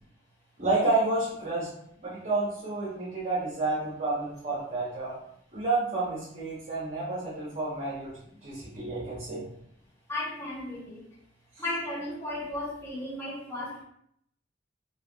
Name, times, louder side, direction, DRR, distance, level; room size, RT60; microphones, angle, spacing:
voice 1, 0.6-1.7 2.0-5.2 5.5-9.5, right 2 dB, 40° right, -8 dB, 0.8 m, -30 dB
voice 2, 10.1-11.1 11.6-13.8, left 1 dB, 15° left, -7 dB, 0.9 m, -35 dB
3.3 x 2.3 x 2.3 m, 0.71 s
head